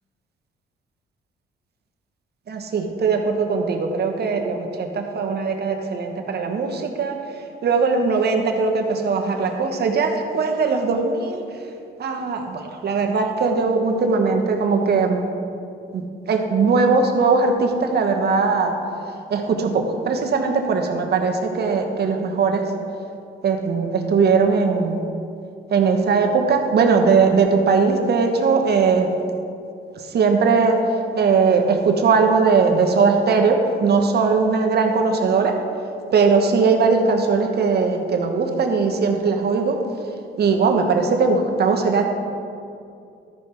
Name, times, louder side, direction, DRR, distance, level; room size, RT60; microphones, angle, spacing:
voice 1, 2.5-7.2 7.6-11.4 12.0-15.2 15.9-18.8 19.3-22.6 23.4-25.0 25.7-29.1 30.1-30.8 31.2-35.6 36.1-39.8 40.4-42.0, right 4 dB, 55° right, 3 dB, 1.1 m, -19 dB
13.5 x 5.1 x 4.4 m, 2.5 s
cardioid pair, 90°, 20 cm